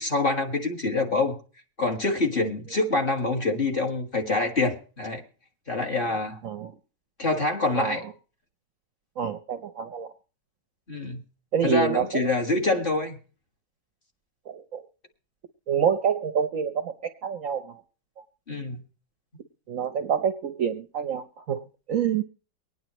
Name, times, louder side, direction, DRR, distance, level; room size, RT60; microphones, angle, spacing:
voice 1, 0.0-1.4 1.8-5.2 5.7-6.4 7.2-8.0 10.9-11.2 11.6-13.2 18.5-18.8, left 3 dB, 30° left, 2 dB, 1.7 m, -26 dB
voice 2, 7.7-8.1 9.2-10.1 11.5-12.3 14.5-14.8 15.7-16.9 17.2-17.8 18.2-18.3 19.7-21.6 21.9-22.2, right 8 dB, 60° right, 9 dB, 0.9 m, -27 dB
24.0 x 9.5 x 3.0 m, 0.37 s
omnidirectional pair, 2.0 m